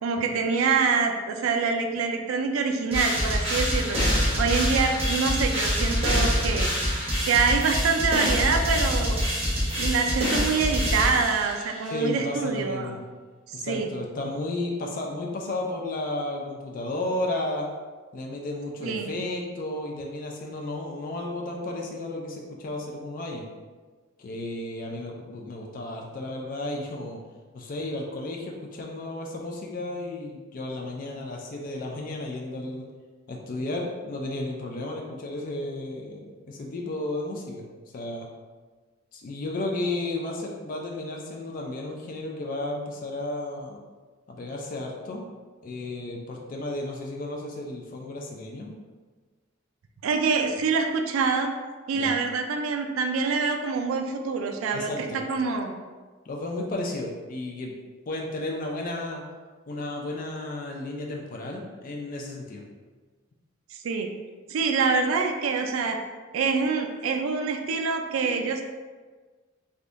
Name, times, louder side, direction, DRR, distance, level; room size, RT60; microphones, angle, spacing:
voice 1, 0.0-4.0 4.4-6.7 7.2-9.2 9.8-12.9 13.5-13.9 18.8-19.1 50.0-51.5 51.9-55.7 63.8-64.1 64.5-66.0 66.3-68.6, right 5 dB, 80° right, 4 dB, 0.3 m, -25 dB
sound 1, 2.9-11.7, equal, 30° right, 0.8 m, -25 dB
voice 2, 11.9-13.0 13.5-17.7 18.1-23.4 24.2-27.2 27.5-32.9 33.3-37.6 37.9-38.3 39.1-43.8 44.3-45.3 45.6-48.7 51.9-52.1 54.7-55.2 56.3-57.7 58.1-59.2 59.7-62.6, left 2 dB, 40° left, 0 dB, 0.3 m, -33 dB
3.4 x 2.6 x 2.5 m, 1.4 s
head